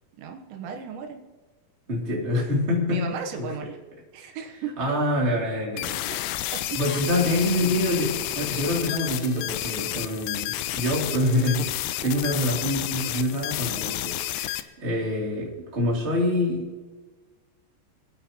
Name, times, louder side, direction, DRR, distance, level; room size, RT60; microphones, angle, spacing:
voice 1, 0.2-1.2 2.9-3.8 4.1-4.8 5.9-6.0 6.5-6.8, right 6 dB, 85° right, 4 dB, 3.4 m, -35 dB
voice 2, 1.9-3.0 3.4-3.5 4.8-6.0 6.7-16.6, left 1 dB, 15° right, -4 dB, 2.7 m, -26 dB
sound 1, 5.8-14.6, left 14 dB, 80° left, 2.4 m, -31 dB
25.0 x 8.8 x 3.1 m, 1.3 s
omnidirectional pair, 5.1 m